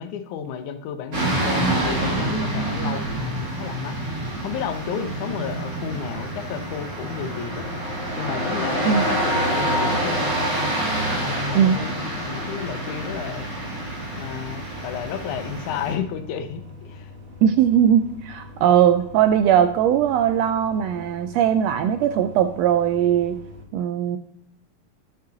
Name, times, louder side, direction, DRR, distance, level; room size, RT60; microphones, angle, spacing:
voice 1, 0.0-4.0 4.4-7.7 8.2-10.5 11.1-13.5 14.2-17.1, left 8 dB, 90° left, 9 dB, 2.2 m, -32 dB
sound 1, 1.1-15.9, right 1 dB, 40° right, 2.8 m, -27 dB
sound 2, 4.4-23.6, left 3 dB, 60° right, 4.8 m, -43 dB
voice 2, 17.4-23.4 23.7-24.2, right 9 dB, 80° right, 9 dB, 1.5 m, -19 dB
11.0 x 5.6 x 3.8 m, 0.72 s
omnidirectional pair, 3.3 m